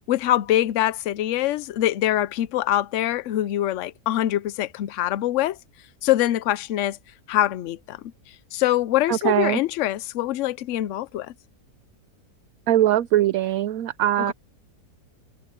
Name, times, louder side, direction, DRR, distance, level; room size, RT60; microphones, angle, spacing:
voice 1, 0.1-5.6 6.0-7.0 7.3-8.0 8.5-11.3 14.3-14.4, left 13 dB, 65° left, 0.8 m, -24 dB
voice 2, 9.1-9.6 12.7-14.3, right 12 dB, 70° right, 1.0 m, -21 dB
omnidirectional pair, 1.7 m